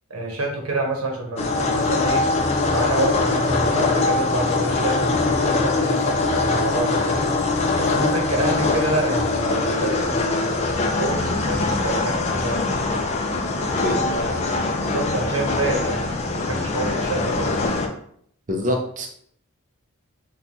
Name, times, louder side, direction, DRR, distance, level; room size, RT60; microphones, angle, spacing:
voice 1, 0.1-2.2 2.7-7.3 7.8-12.7 14.1-16.0 16.3-17.7, right 2 dB, 80° right, 0 dB, 0.9 m, -27 dB
sound 1, 1.4-17.9, left 3 dB, 30° left, 0.3 m, -22 dB
voice 2, 13.6-14.0 18.5-19.1, left 1 dB, 35° right, 2 dB, 0.6 m, -25 dB
3.8 x 2.3 x 2.9 m, 0.64 s
head